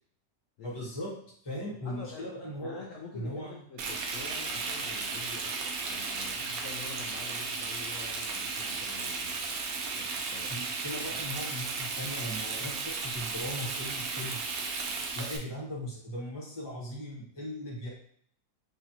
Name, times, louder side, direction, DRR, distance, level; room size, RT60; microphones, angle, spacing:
voice 1, 0.6-1.1 1.4-2.8 3.1-3.6 10.5-14.4 15.1-17.9, equal, 20° left, -5 dB, 0.9 m, -38 dB
voice 2, 1.8-2.3 2.6-9.4 9.9-10.5, left 5 dB, 70° left, -2 dB, 0.7 m, -46 dB
Frying (food), 3.8-15.4, right 4 dB, 70° right, 0.9 m, -35 dB
5.0 x 2.4 x 2.8 m, 0.62 s
omnidirectional pair, 2.0 m